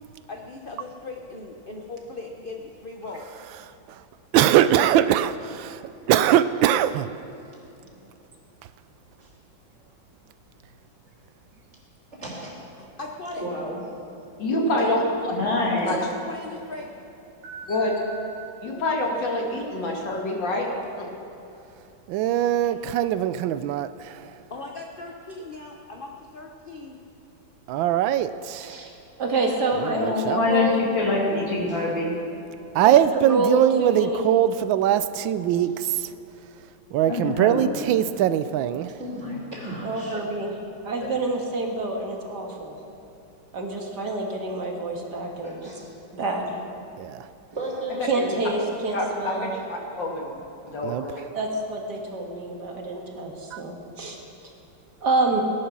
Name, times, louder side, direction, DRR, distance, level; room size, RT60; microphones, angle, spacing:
voice 1, 0.3-3.3 13.0-13.4 15.9-16.9 24.5-27.0, left 3 dB, 40° left, 1 dB, 0.7 m, -38 dB
voice 2, 4.3-5.8 6.1-7.1 22.1-24.2 27.7-28.8 29.8-30.4 32.7-36.1 36.9-38.9 47.0-47.2 50.8-51.1 53.5-53.6, right 11 dB, 85° right, 14 dB, 1.3 m, -21 dB
voice 3, 12.1-12.5 13.4-13.8 17.4-18.1 22.6-22.7 31.7-31.8 39.0-40.2 45.4-45.9 47.6-48.0, right 1 dB, 35° right, -4 dB, 3.8 m, -35 dB
voice 4, 14.4-15.0 15.8-16.0 17.7-18.0 18.6-20.7 21.0-21.1 41.0-41.1 47.9-48.3 48.9-50.3 50.6-51.2, left 2 dB, 65° left, -1 dB, 2.8 m, -27 dB
voice 5, 15.3-15.9 29.9-32.2 37.0-37.7, left 3 dB, 90° left, -2 dB, 3.4 m, -24 dB
voice 6, 29.2-30.8 32.8-34.2 39.8-40.5 40.8-42.8 43.5-45.6 46.1-46.6 48.1-49.5 51.3-54.2 55.0-55.4, right 2 dB, 60° right, 1 dB, 2.3 m, -27 dB
17.5 x 11.0 x 6.1 m, 2.9 s
omnidirectional pair, 2.1 m